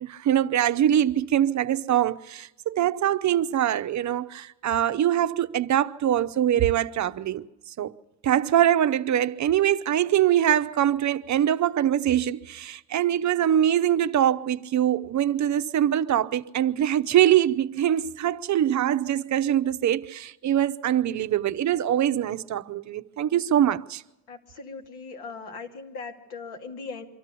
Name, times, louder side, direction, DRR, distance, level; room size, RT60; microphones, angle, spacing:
voice 1, 0.0-7.9 8.2-24.0, right 11 dB, 50° right, 0.7 m, -23 dB
voice 2, 24.3-27.0, left 4 dB, 80° left, 2.7 m, -39 dB
24.5 x 13.0 x 8.4 m
cardioid pair, 100°, 38 cm